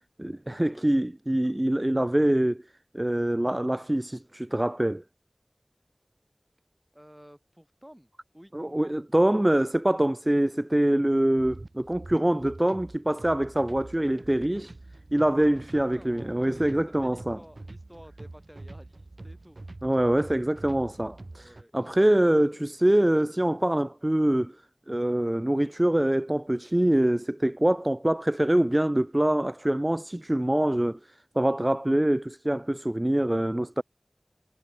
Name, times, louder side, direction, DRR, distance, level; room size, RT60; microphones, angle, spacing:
voice 1, 0.2-2.6 2.9-5.0 8.5-14.7 15.1-17.4 19.8-24.5 24.9-31.0 31.4-33.8, right 1 dB, 30° right, 0.5 m, -24 dB
voice 2, 6.9-8.5 15.7-18.9 19.2-20.0 21.3-22.2 22.5-22.6, equal, 5° right, 5.2 m, -51 dB
sound 1, 11.4-21.6, right 2 dB, 70° right, 2.0 m, -46 dB
wide cardioid pair, 45°, 0 cm